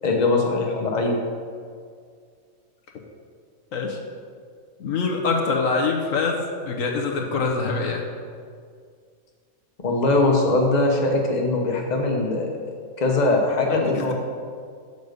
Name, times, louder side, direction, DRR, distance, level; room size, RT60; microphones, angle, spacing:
voice 1, 0.0-1.1 9.8-12.6 13.0-14.1, left 2 dB, 35° left, 0 dB, 1.1 m, -21 dB
voice 2, 4.8-6.4 6.7-8.0 13.7-14.1, left 4 dB, 70° left, 1 dB, 1.2 m, -24 dB
6.9 x 5.3 x 6.5 m, 2.1 s
omnidirectional pair, 1.5 m